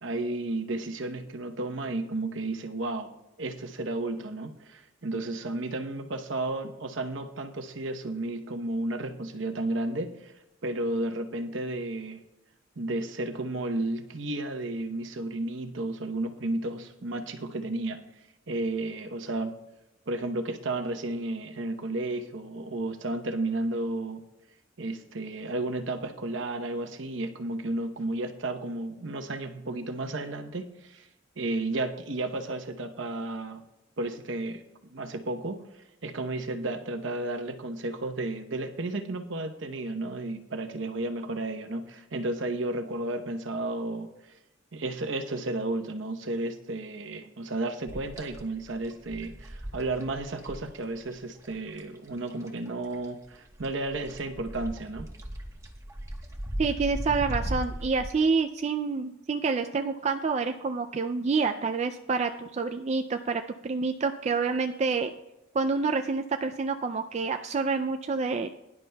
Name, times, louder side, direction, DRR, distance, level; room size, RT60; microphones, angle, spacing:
voice 1, 0.0-3.1 3.4-10.3 10.6-12.2 12.8-18.0 18.5-19.6 20.1-24.2 24.8-31.1 31.4-33.6 34.0-34.6 34.9-44.3 44.7-55.1, right 2 dB, 65° right, 7 dB, 0.9 m, -33 dB
sound 1, 47.9-52.7 52.9-58.1, equal, 15° right, 1.1 m, -37 dB
voice 2, 56.6-65.1 65.5-68.5, right 4 dB, 35° right, 6 dB, 0.3 m, -28 dB
22.0 x 11.0 x 2.3 m, 0.94 s
head